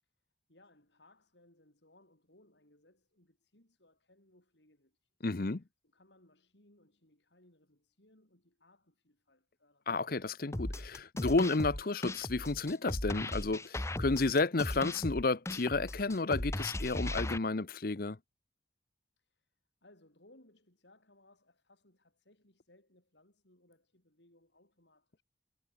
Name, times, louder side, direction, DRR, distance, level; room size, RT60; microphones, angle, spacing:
voice 1, 0.0-9.9 19.2-25.2, left 1 dB, 70° left, 7.3 m, -66 dB
voice 2, 5.2-5.6 9.9-18.2, left 3 dB, 50° left, 0.8 m, -32 dB
sound 1, 10.5-17.4, left 1 dB, 15° left, 0.9 m, -37 dB
head